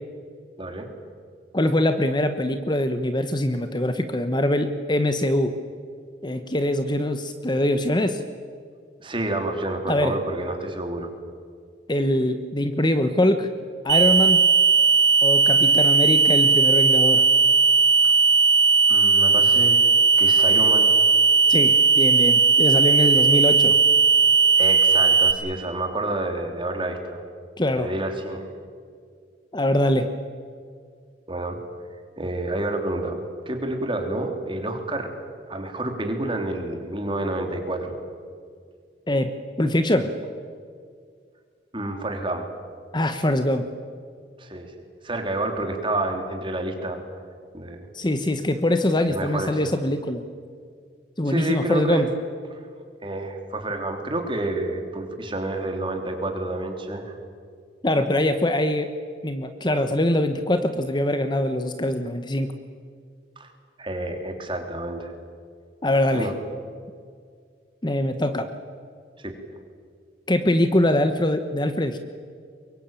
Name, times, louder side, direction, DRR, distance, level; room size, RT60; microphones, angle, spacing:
voice 1, 0.6-0.9 9.0-11.1 18.9-19.8 20.2-20.9 23.0-23.3 24.6-27.2 27.7-28.5 31.3-31.6 32.2-35.1 35.5-38.0 41.7-42.5 44.4-44.7 45.0-47.0 47.5-47.9 49.1-49.6 51.2-52.0 52.5-52.7 53.0-57.2 63.4-63.5 63.8-65.1 66.1-66.3 69.2-69.3, right 2 dB, 30° right, 4 dB, 3.4 m, -29 dB
voice 2, 1.5-5.5 6.2-8.2 9.9-10.2 11.9-13.5 13.8-14.4 15.2-17.2 21.5-23.8 27.6-27.9 29.5-30.1 39.1-39.3 39.6-40.1 42.9-43.7 47.9-50.2 51.2-52.1 57.8-58.9 59.2-62.5 65.8-66.3 67.8-68.5 70.3-72.0, left 1 dB, 25° left, 8 dB, 1.1 m, -23 dB
sound 1, 13.9-25.3, right 5 dB, 80° right, 3.3 m, -17 dB
23.5 x 22.5 x 9.1 m, 2.1 s
head